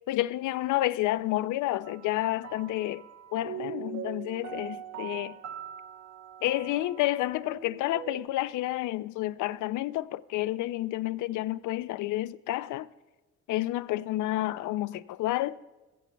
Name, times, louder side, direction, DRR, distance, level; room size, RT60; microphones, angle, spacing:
voice 1, 0.1-3.0 3.3-5.4 6.4-12.9 13.5-15.6, left 16 dB, 80° left, 0.5 m, -30 dB
sound 1, 1.8-8.3, right 9 dB, 70° right, 1.1 m, -42 dB
23.0 x 15.0 x 2.3 m
cardioid pair, 90°, 30 cm